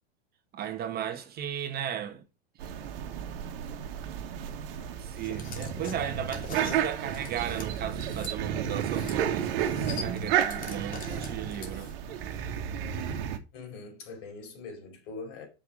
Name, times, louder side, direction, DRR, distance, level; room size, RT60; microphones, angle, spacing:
voice 1, 0.5-2.2 2.6-2.7 5.0-11.9, right 10 dB, 30° right, 1.3 m, -36 dB
sound 1, 2.6-13.4, right 9 dB, 60° right, 1.6 m, -32 dB
sound 2, 5.2-8.3 8.8-9.2 9.5-12.1, left 4 dB, 25° left, 2.7 m, -43 dB
voice 2, 13.5-15.5, left 3 dB, 55° left, 5.1 m, -42 dB
7.2 x 5.7 x 4.9 m
hypercardioid pair, 120°, 31 cm